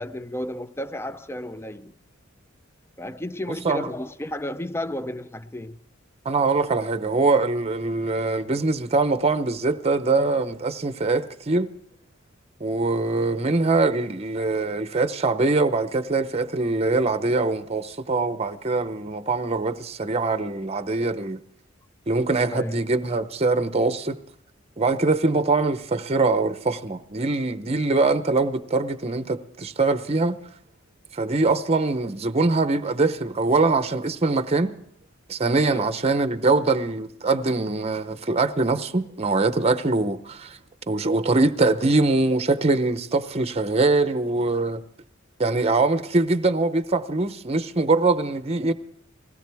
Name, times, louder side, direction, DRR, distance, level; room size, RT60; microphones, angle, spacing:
voice 1, 0.0-1.9 3.0-5.8 22.5-22.8 35.6-35.9, left 1 dB, 10° left, 0.6 m, -32 dB
voice 2, 6.2-11.7 12.6-21.4 22.1-24.2 24.8-30.4 31.1-34.7 35.3-40.6 40.9-44.8 45.4-48.7, right 3 dB, 30° right, 0.8 m, -23 dB
20.5 x 17.0 x 3.5 m
head